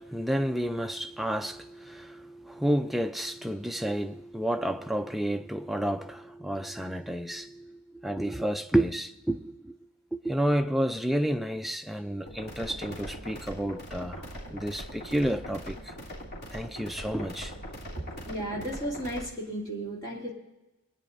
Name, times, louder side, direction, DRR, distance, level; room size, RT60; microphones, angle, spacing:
voice 1, 0.0-9.8 10.1-14.2 14.5-15.9 16.5-17.6, right 1 dB, ahead, 0.3 m, -30 dB
sound 1, 12.3-19.3, equal, 50° left, 3.2 m, -41 dB
voice 2, 18.2-20.3, right 1 dB, 20° left, 2.8 m, -34 dB
22.0 x 10.0 x 2.6 m
head